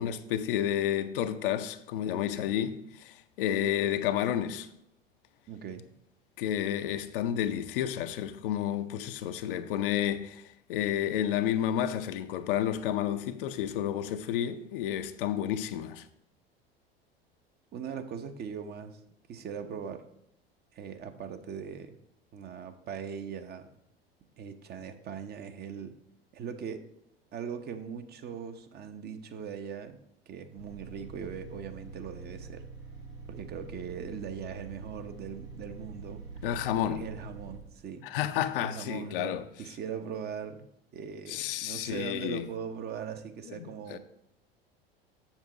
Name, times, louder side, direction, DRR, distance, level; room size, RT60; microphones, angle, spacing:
voice 1, 0.0-4.7 6.4-16.1 36.4-37.1 38.0-39.5 41.3-42.5 43.5-44.0, left 10 dB, 60° left, 0.7 m, -31 dB
voice 2, 5.5-5.9 17.7-19.0 19.3-20.1 20.7-21.9 22.3-23.7 24.4-25.9 26.3-26.8 27.3-30.0 30.3-32.7 33.3-36.2 36.9-38.1 38.6-44.0, right 7 dB, 30° right, 0.8 m, -40 dB
sound 1, 30.6-37.6, right 4 dB, 75° right, 1.5 m, -45 dB
7.3 x 7.1 x 3.8 m
figure-of-eight pair, 80°, 31 cm